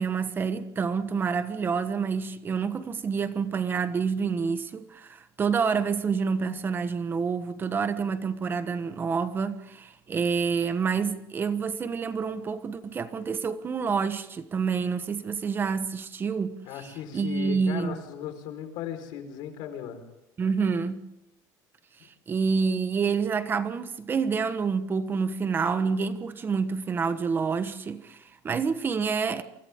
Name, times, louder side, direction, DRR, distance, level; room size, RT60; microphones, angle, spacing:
voice 1, 0.0-18.0 20.4-21.0 22.0-29.4, right 5 dB, 25° right, 1.2 m, -28 dB
voice 2, 16.6-20.0, left 8 dB, 70° left, 4.6 m, -37 dB
29.5 x 24.5 x 3.7 m
cardioid pair, 140°, 8 cm